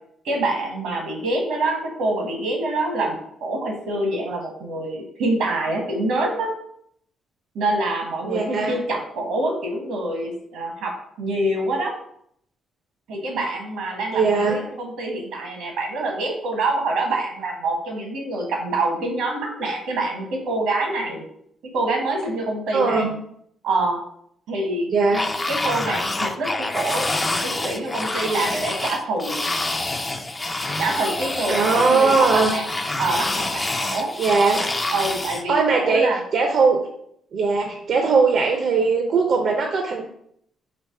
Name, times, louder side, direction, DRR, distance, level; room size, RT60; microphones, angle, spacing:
voice 1, 0.2-6.5 7.5-11.9 13.1-21.2 21.7-23.0 23.6-24.0 24.5-24.9 25.5-27.1 27.4-29.4 30.8-32.7 33.0-34.1 34.9-36.2, right 2 dB, 85° right, 1 dB, 1.1 m, -26 dB
voice 2, 8.2-8.7 14.1-14.6 22.7-23.1 24.9-25.2 31.5-32.5 34.2-34.7 35.5-36.8 37.3-40.1, right 4 dB, 60° right, 2 dB, 0.5 m, -19 dB
sound 1, 25.1-35.4, left 2 dB, 20° left, 0.4 m, -27 dB
3.4 x 2.9 x 4.4 m, 0.70 s
cardioid pair, 90°, 0 cm